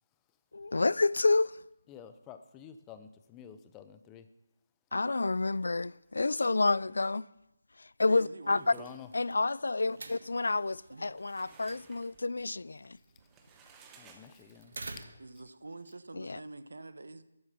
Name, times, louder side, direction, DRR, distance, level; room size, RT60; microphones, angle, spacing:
voice 1, 0.5-1.6 4.9-7.2 8.0-8.7 9.1-13.0 16.1-16.4, left 3 dB, 85° left, 0.4 m, -29 dB
voice 2, 1.9-4.3 8.6-9.1 13.6-15.1, left 8 dB, 10° left, 0.6 m, -50 dB
voice 3, 8.1-8.9 10.9-11.1 15.2-17.2, right 2 dB, 90° right, 1.1 m, -46 dB
sound 1, 8.5-15.4, right 3 dB, 70° right, 1.5 m, -51 dB
sound 2, 10.9-14.9, right 6 dB, 10° right, 0.9 m, -59 dB
12.5 x 11.0 x 5.8 m
hypercardioid pair, 170°, 0 cm